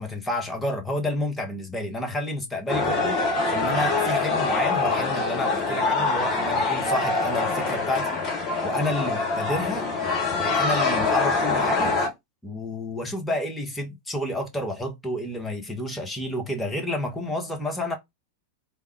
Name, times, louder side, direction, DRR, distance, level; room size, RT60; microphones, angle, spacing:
voice 1, 0.0-8.2 8.6-9.8 10.4-12.1 12.4-18.0, left 1 dB, 10° left, 1.0 m, -30 dB
sound 1, 2.7-12.1, left 3 dB, 30° left, 1.2 m, -24 dB
3.5 x 2.2 x 3.1 m
figure-of-eight pair, 90°, 0 cm